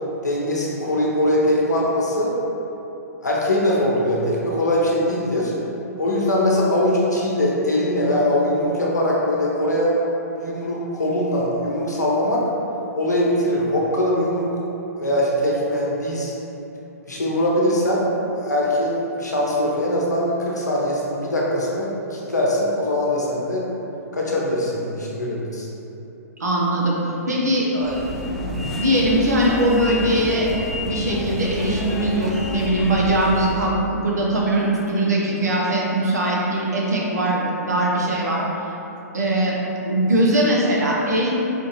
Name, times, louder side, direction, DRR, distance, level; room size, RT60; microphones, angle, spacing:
voice 1, 0.2-2.3 3.2-5.5 6.0-10.0 10.4-12.4 12.9-14.5 15.0-16.3 17.1-18.0 18.4-23.6 24.1-25.7, left 1 dB, 90° left, -4 dB, 0.8 m, -21 dB
voice 2, 26.4-26.9 27.3-28.0 28.4-38.4 39.1-39.5 39.9-41.3, right 1 dB, 80° right, -4 dB, 0.7 m, -21 dB
sound 1, 27.8-33.7, left 1 dB, ahead, 0.4 m, -30 dB
4.4 x 2.5 x 2.9 m, 3.0 s
figure-of-eight pair, 120°, 9 cm